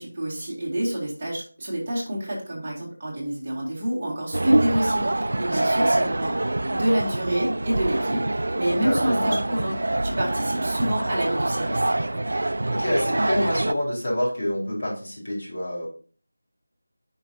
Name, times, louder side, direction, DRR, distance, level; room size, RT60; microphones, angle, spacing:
voice 1, 0.0-6.4 6.7-9.8 10.0-11.9, right 1 dB, 20° right, -6 dB, 2.1 m, -27 dB
sound 1, 4.3-13.7, right 2 dB, 60° right, 0.4 m, -25 dB
voice 2, 5.5-6.0 8.8-9.4 12.7-15.9, left 1 dB, 45° left, -5 dB, 4.1 m, -27 dB
10.5 x 5.5 x 2.7 m, 0.41 s
figure-of-eight pair, 175°, 0 cm